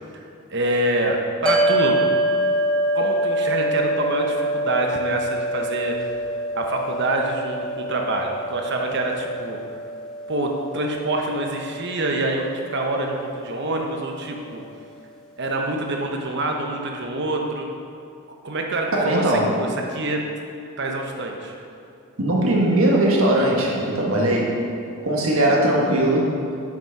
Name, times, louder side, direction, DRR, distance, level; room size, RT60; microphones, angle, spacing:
voice 1, 0.5-2.0 2.9-6.0 6.5-9.6 10.3-14.6 15.4-17.7 18.4-20.2 20.8-21.5, right 2 dB, 50° right, 2 dB, 1.0 m, -26 dB
sound 1, 1.5-13.9, right 1 dB, 5° left, 0.8 m, -26 dB
voice 2, 18.9-19.5 22.2-24.6 25.0-26.3, right 1 dB, 70° right, -2 dB, 1.6 m, -19 dB
7.6 x 6.0 x 5.9 m, 2.5 s
head